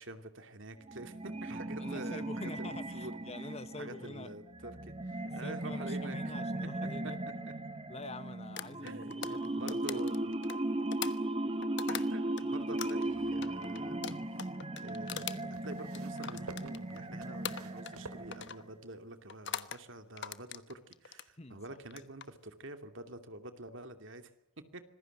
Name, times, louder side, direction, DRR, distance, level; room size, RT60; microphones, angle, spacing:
voice 1, 0.0-3.3 3.8-6.4 6.8-7.1 8.8-10.1 11.9-14.2 14.8-24.3 24.7-24.8, right 2 dB, 60° right, 8 dB, 2.7 m, -47 dB
sound 1, 0.8-18.8, right 1 dB, 25° right, 1.6 m, -37 dB
voice 2, 1.8-4.3 5.4-7.2 7.9-10.2 21.4-21.8, left 2 dB, 30° left, 13 dB, 1.1 m, -46 dB
sound 2, 8.6-12.4 12.8-17.1 17.4-18.0 18.3-18.6 19.3-19.8 20.2-21.3 21.8-22.3, left 8 dB, 55° left, 1.2 m, -42 dB
sound 3, 13.5-14.4 15.5-19.0 19.9-20.0, right 3 dB, 85° right, 2.9 m, -52 dB
26.5 x 20.5 x 8.0 m, 0.84 s
head